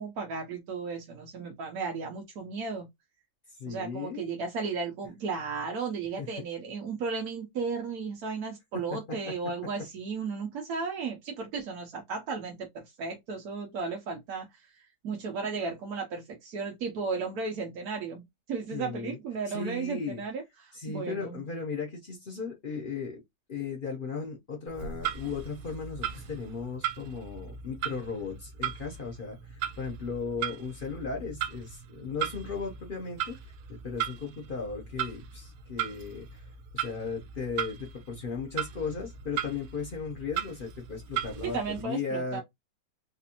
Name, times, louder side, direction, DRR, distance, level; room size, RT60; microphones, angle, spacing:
voice 1, 0.0-2.9 3.7-21.4 41.4-42.4, right 4 dB, 60° right, 1.1 m, -35 dB
voice 2, 3.6-4.3 6.2-6.3 8.7-9.3 18.7-19.2 19.5-20.2 20.7-23.2 23.5-33.4 33.7-36.4 36.7-42.4, left 5 dB, 75° left, 0.4 m, -36 dB
Clock, 24.7-41.8, right 9 dB, 85° right, 1.3 m, -38 dB
4.0 x 2.5 x 2.8 m
omnidirectional pair, 2.1 m